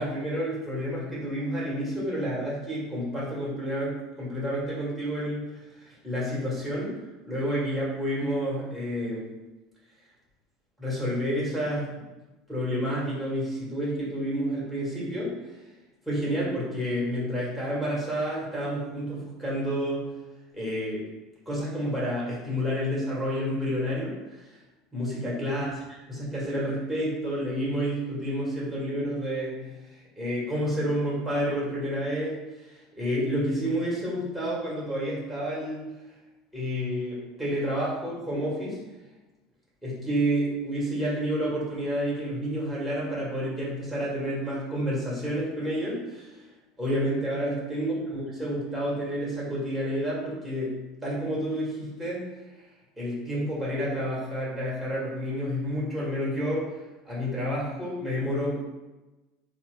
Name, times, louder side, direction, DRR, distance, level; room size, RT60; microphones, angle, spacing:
voice 1, 0.0-7.0 7.2-9.3 10.8-12.0 12.5-15.6 16.1-20.0 20.5-21.0 21.4-24.5 24.9-25.7 26.1-35.9 36.5-38.8 39.8-46.3 46.8-52.3 53.0-56.8 57.0-58.7, equal, 5° left, -7 dB, 1.5 m, -30 dB
3.7 x 2.1 x 3.2 m, 1.1 s
hypercardioid pair, 80°, 0 cm